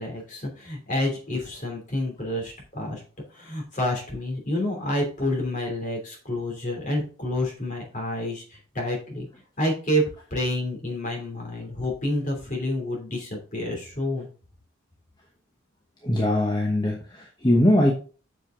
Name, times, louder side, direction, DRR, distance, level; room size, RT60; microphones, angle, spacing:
voice 1, 0.0-3.0 3.3-9.3 9.6-10.0 10.3-14.3, left 1 dB, 35° left, 1 dB, 2.9 m, -28 dB
voice 2, 16.0-17.9, left 1 dB, 20° left, 0 dB, 1.0 m, -21 dB
7.5 x 6.7 x 3.8 m, 0.38 s
head